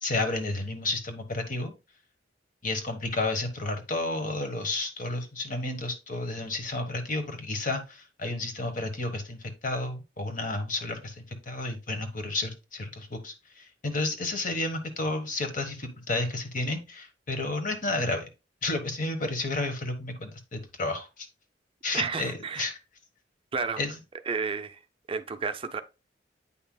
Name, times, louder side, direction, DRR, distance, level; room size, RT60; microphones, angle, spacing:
voice 1, 0.0-1.7 2.6-18.3 18.6-21.3 21.8-22.8 23.8-23.9, left 2 dB, 45° left, 1.3 m, -31 dB
voice 2, 21.9-22.7 23.5-23.8 24.3-24.8 25.1-25.8, right 5 dB, 30° right, 0.4 m, -31 dB
8.6 x 5.5 x 2.3 m
head